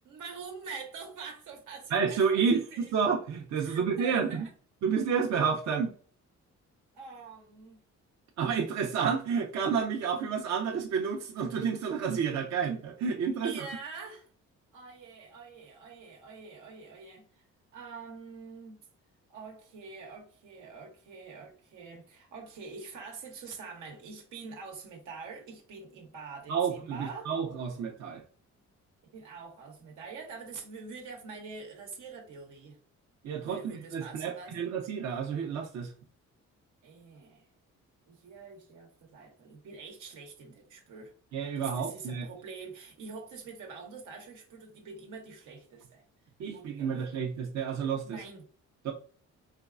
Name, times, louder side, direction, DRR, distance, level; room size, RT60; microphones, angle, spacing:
voice 1, 0.0-2.9 3.6-4.5 6.9-7.8 13.4-14.3 14.7-17.4 17.7-18.8 19.3-27.3 29.1-32.8 33.4-34.5 36.8-37.4 38.1-41.1 41.6-46.0 46.5-47.3 48.0-48.4, right 4 dB, 85° right, 1.0 m, -45 dB
voice 2, 1.9-4.5 4.8-5.9 8.4-13.7 26.5-28.2 33.2-35.9 41.3-42.3 46.4-48.2 48.8-48.9, right 6 dB, 60° right, 0.7 m, -30 dB
4.3 x 2.3 x 2.4 m
cardioid pair, 90°, 30 cm